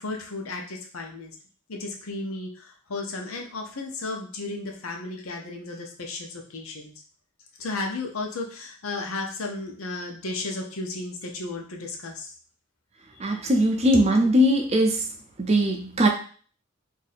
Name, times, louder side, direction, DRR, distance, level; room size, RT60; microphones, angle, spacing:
voice 1, 0.0-1.3 1.7-6.9 7.6-12.3, left 2 dB, 85° left, 1 dB, 0.8 m, -34 dB
voice 2, 13.2-15.0 15.4-16.1, equal, 30° right, 2 dB, 0.5 m, -20 dB
2.7 x 2.6 x 4.1 m, 0.42 s
head